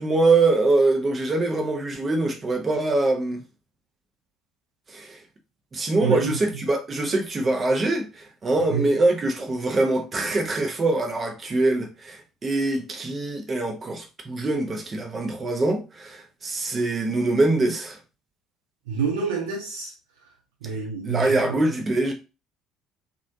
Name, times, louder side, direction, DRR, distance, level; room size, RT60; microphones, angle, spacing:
voice 1, 0.0-3.4 4.9-5.2 5.7-18.0 20.6-20.7 21.0-22.1, right 2 dB, 30° right, 0.8 m, -23 dB
voice 2, 6.0-6.3 8.7-8.9 18.9-19.9 20.6-21.6, right 6 dB, 70° right, 1.0 m, -27 dB
3.1 x 2.5 x 2.7 m
figure-of-eight pair, 55°, 0 cm